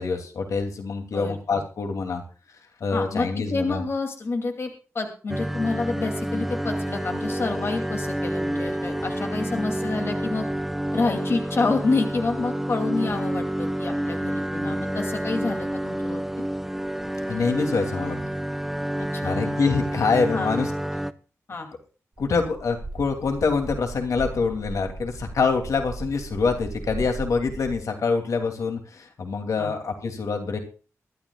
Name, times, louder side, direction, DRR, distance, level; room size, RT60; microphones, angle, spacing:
voice 1, 0.0-2.2 2.8-3.8 17.3-18.2 19.2-20.7 22.2-30.6, left 4 dB, 80° left, 4 dB, 2.7 m, -25 dB
voice 2, 1.0-1.6 2.9-10.5 10.9-16.2 19.0-19.4 20.3-20.5 21.5-21.7 29.6-29.7, left 3 dB, 50° left, 3 dB, 2.7 m, -28 dB
sound 1, 5.3-21.1, right 1 dB, 5° right, 0.6 m, -29 dB
sound 2, 22.2-27.8, right 3 dB, 30° right, 3.9 m, -37 dB
23.0 x 13.0 x 2.4 m, 0.36 s
wide cardioid pair, 155°, 6 cm